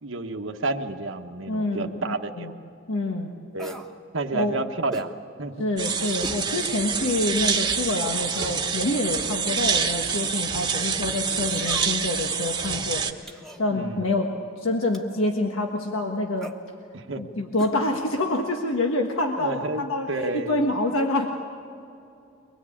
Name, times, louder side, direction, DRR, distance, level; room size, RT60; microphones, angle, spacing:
voice 1, 0.0-2.6 3.5-3.8 4.1-5.7 13.7-14.1 16.9-17.3 19.4-20.6, right 2 dB, 75° right, 5 dB, 1.2 m, -30 dB
voice 2, 1.5-2.5 2.9-3.3 4.3-4.6 5.6-13.0 13.6-16.5 17.2-21.3, left 2 dB, 90° left, 2 dB, 1.5 m, -27 dB
sound 1, 3.6-3.9 4.9-5.1 6.2-6.4 6.9-7.0 8.3-8.7 9.6-9.9 11.5-12.1 13.3-13.6 14.9-15.2 16.4-16.6 17.6-17.8 18.0-18.1, right 1 dB, ahead, 1.2 m, -39 dB
sound 2, 5.8-13.1, right 6 dB, 20° right, 1.2 m, -27 dB
24.0 x 20.5 x 8.6 m, 2.6 s
head